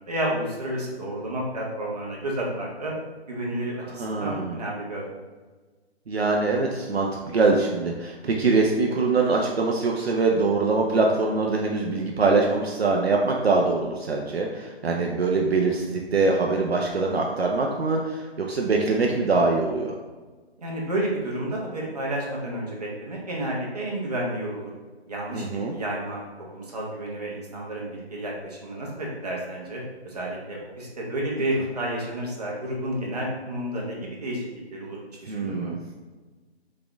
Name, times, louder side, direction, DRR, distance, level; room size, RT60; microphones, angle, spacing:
voice 1, 0.1-2.9 3.3-5.0 20.6-24.7 25.1-26.2 26.5-35.7, right 1 dB, 35° right, -3 dB, 1.0 m, -31 dB
voice 2, 3.8-4.6 6.1-19.9 25.3-25.8 35.3-35.8, right 3 dB, 65° right, 0 dB, 0.7 m, -23 dB
3.9 x 3.7 x 3.5 m, 1.3 s
hypercardioid pair, 170°, 33 cm